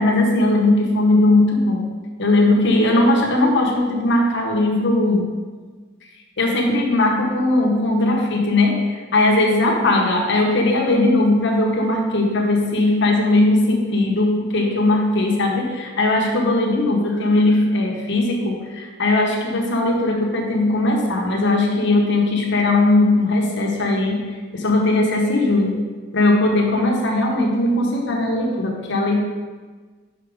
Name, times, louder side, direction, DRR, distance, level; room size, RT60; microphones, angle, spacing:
voice 1, 0.0-1.8 2.2-5.3 6.4-24.2 24.5-25.9 26.1-29.2, left 2 dB, 60° left, 0 dB, 1.1 m, -18 dB
5.7 x 5.1 x 4.8 m, 1.4 s
head